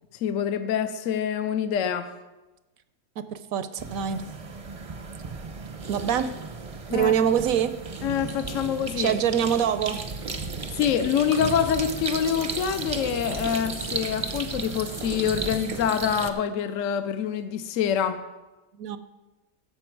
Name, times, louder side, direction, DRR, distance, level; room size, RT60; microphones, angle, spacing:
voice 1, 0.2-2.1 6.9-7.1 8.0-9.2 10.7-18.2, left 8 dB, 65° left, 9 dB, 0.9 m, -26 dB
voice 2, 3.2-4.2 5.9-6.3 6.9-7.8 9.0-10.0 18.8-19.0, right 8 dB, 75° right, 12 dB, 1.0 m, -24 dB
sound 1, 3.8-16.3, right 4 dB, 35° right, 0.6 m, -34 dB
14.0 x 7.5 x 4.6 m, 1.1 s
omnidirectional pair, 1.6 m